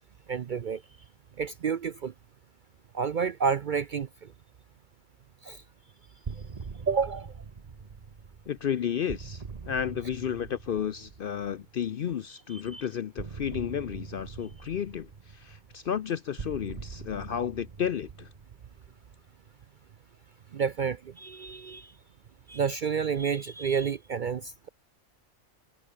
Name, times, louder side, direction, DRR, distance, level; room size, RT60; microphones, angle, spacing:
voice 1, 0.3-0.8 1.4-2.1 2.9-4.3 5.4-5.6 6.9-7.3 12.5-12.8 20.5-21.9 22.5-24.7, right 6 dB, 55° right, 0.6 m, -30 dB
sound 1, 6.2-12.0 13.2-19.4, right 5 dB, 35° right, 1.0 m, -43 dB
voice 2, 8.5-18.3, left 8 dB, 55° left, 0.6 m, -32 dB
omnidirectional pair, 1.4 m